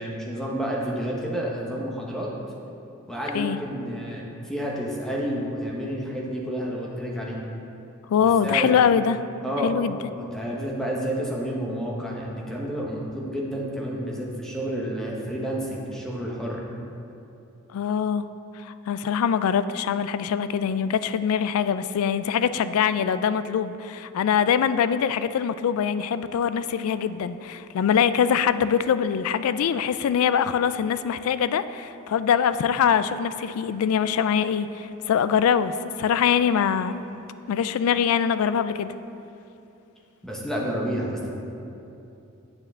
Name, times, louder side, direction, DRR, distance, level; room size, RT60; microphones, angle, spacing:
voice 1, 0.0-2.3 3.1-7.4 8.2-8.7 9.4-9.7 10.1-16.6 40.2-41.3, equal, ahead, -3 dB, 1.0 m, -30 dB
voice 2, 8.1-9.2 9.6-10.0 17.7-18.3 18.6-37.0 37.5-38.9, left 7 dB, 75° left, 13 dB, 0.3 m, -23 dB
8.9 x 6.5 x 3.6 m, 2.8 s
head